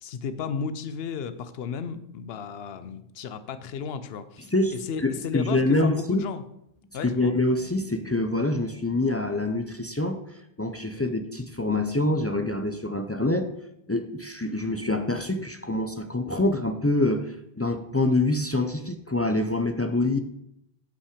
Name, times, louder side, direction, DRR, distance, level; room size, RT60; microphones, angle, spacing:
voice 1, 0.0-6.4 6.9-7.4 10.9-11.0, left 6 dB, 75° left, 12 dB, 0.9 m, -34 dB
voice 2, 4.5-6.2 7.0-10.2 10.6-13.5 13.9-20.2, left 2 dB, 25° left, 7 dB, 0.3 m, -25 dB
8.0 x 5.6 x 5.0 m, 0.79 s
omnidirectional pair, 1.1 m